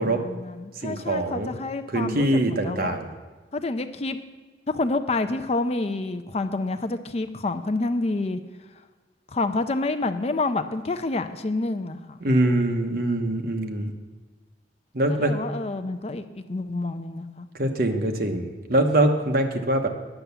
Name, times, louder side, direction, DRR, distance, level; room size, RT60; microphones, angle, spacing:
voice 1, 0.0-3.0 3.5-4.2 4.7-8.4 9.3-12.2 15.1-16.2 16.5-17.5, left 2 dB, 35° left, 9 dB, 0.5 m, -28 dB
voice 2, 0.8-1.5 1.9-3.1 12.2-13.9 14.9-15.4 17.5-19.9, right 1 dB, 50° right, 5 dB, 1.1 m, -23 dB
10.0 x 7.0 x 6.9 m, 1.3 s
head